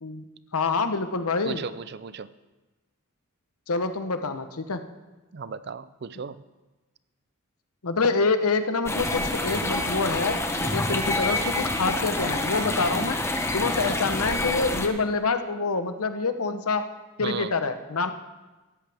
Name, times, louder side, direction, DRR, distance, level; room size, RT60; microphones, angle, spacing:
voice 1, 0.5-1.6 3.7-4.8 7.8-13.2 13.5-16.8 17.2-18.1, left 4 dB, 90° left, 9 dB, 1.0 m, -26 dB
voice 2, 1.4-2.3 5.3-6.4 17.2-17.5, right 5 dB, 50° right, 15 dB, 0.5 m, -35 dB
sound 1, 8.9-14.9, left 2 dB, 10° left, 0.9 m, -27 dB
18.5 x 14.0 x 3.5 m, 1.2 s
head